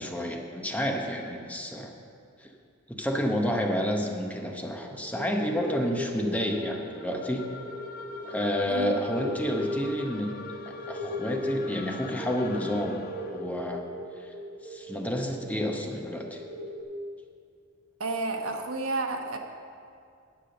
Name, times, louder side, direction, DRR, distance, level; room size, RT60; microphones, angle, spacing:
voice 1, 0.0-1.9 2.4-2.5 2.9-7.5 8.3-10.3 10.7-13.0 13.3-13.8 14.2-14.3 14.6-16.4, equal, 5° left, 2 dB, 0.9 m, -30 dB
sound 1, 4.4-16.8, left 1 dB, 40° right, 1.4 m, -38 dB
sound 2, 6.3-13.6, left 4 dB, 45° left, 0.6 m, -45 dB
voice 2, 8.7-9.0 18.0-19.4, right 3 dB, 75° right, 4 dB, 1.1 m, -31 dB
10.0 x 8.3 x 6.6 m, 2.4 s
head